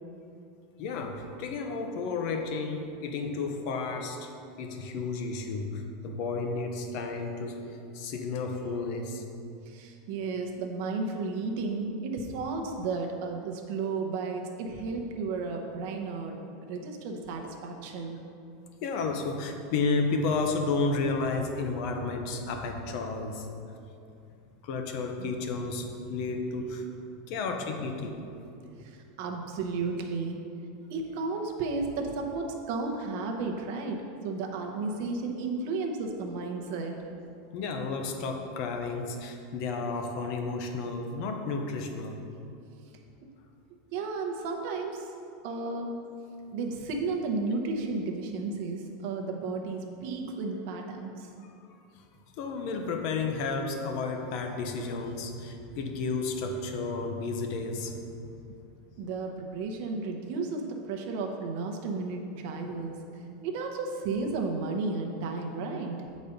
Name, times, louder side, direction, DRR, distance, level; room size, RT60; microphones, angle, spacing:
voice 1, 0.8-4.3 4.6-7.6 7.9-9.2 18.8-23.5 24.6-26.9 27.3-28.3 37.5-42.2 52.4-58.3, left 3 dB, 40° left, 4 dB, 0.7 m, -32 dB
voice 2, 9.7-18.2 25.2-25.3 28.8-30.4 30.9-37.0 43.9-45.1 45.4-46.0 46.5-51.3 59.0-66.0, right 3 dB, 45° right, 2 dB, 0.8 m, -33 dB
8.4 x 4.1 x 5.1 m, 2.6 s
supercardioid pair, 180°, 0 cm